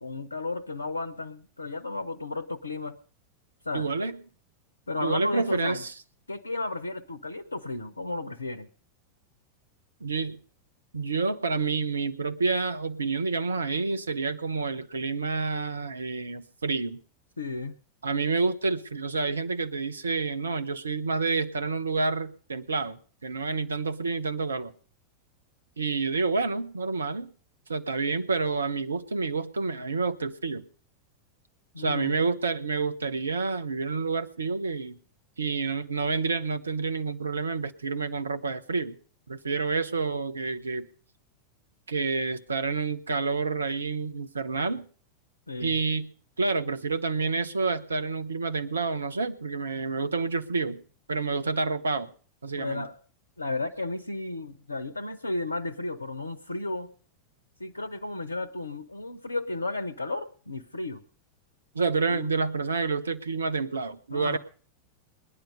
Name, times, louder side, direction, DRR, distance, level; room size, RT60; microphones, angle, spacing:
voice 1, 0.0-3.0 3.6-3.9 4.9-5.8 6.3-8.7 17.4-17.7 31.7-32.2 45.5-45.8 52.6-53.0 53.4-56.9 57.6-61.0 62.1-62.3 64.1-64.4, left 2 dB, 80° left, 13 dB, 0.9 m, -33 dB
voice 2, 3.7-4.2 5.0-5.9 10.0-10.4 10.9-17.0 18.0-24.7 25.8-27.3 27.7-30.6 31.8-35.0 35.4-38.9 39.3-40.9 41.9-44.8 45.6-46.1 46.4-50.8 51.1-52.1 52.4-52.8 61.7-64.4, right 4 dB, 75° right, 9 dB, 1.1 m, -28 dB
20.0 x 10.5 x 5.3 m, 0.43 s
figure-of-eight pair, 90°, 0 cm